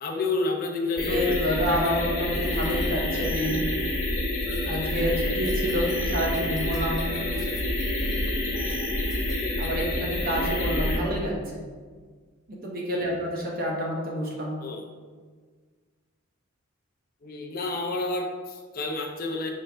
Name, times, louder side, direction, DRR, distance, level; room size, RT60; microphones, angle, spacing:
voice 1, 0.0-1.3 7.5-7.6 10.3-10.6 14.6-14.9 17.2-19.5, left 3 dB, 40° left, 1 dB, 0.4 m, -30 dB
sound 1, 1.0-11.0, left 1 dB, 65° left, 1.0 m, -28 dB
Keys jangling, 1.0-10.0, left 2 dB, ahead, 0.6 m, -50 dB
voice 2, 1.0-3.6 4.7-7.0 9.6-11.3 12.5-14.5, equal, 40° right, -2 dB, 0.7 m, -28 dB
5.1 x 2.5 x 3.3 m, 1.6 s
head